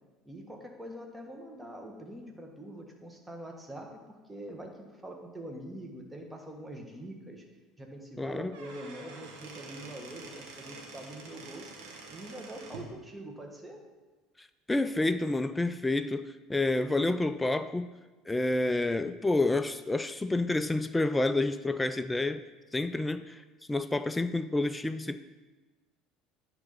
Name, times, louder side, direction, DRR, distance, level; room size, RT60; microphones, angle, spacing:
voice 1, 0.2-7.4 7.8-11.7 12.1-13.8, right 1 dB, 10° right, 2 dB, 1.4 m, -44 dB
voice 2, 8.2-8.6 14.4-17.9 18.3-22.4 22.7-23.4 23.7-25.2, left 2 dB, 10° left, 11 dB, 0.3 m, -29 dB
Squeak / Wood, 8.3-12.9, right 3 dB, 65° right, 1.3 m, -47 dB
9.8 x 3.5 x 5.6 m, 1.2 s
figure-of-eight pair, 65°, 0 cm